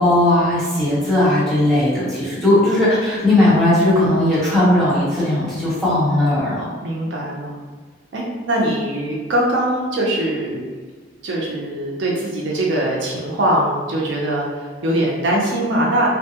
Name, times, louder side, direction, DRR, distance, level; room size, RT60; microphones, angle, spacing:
voice 1, 0.0-6.6, left 1 dB, ahead, -11 dB, 1.0 m, -17 dB
voice 2, 6.8-7.5 8.1-10.6 11.2-16.1, right 1 dB, 70° right, -3 dB, 0.5 m, -21 dB
2.5 x 2.2 x 2.8 m, 1.4 s
head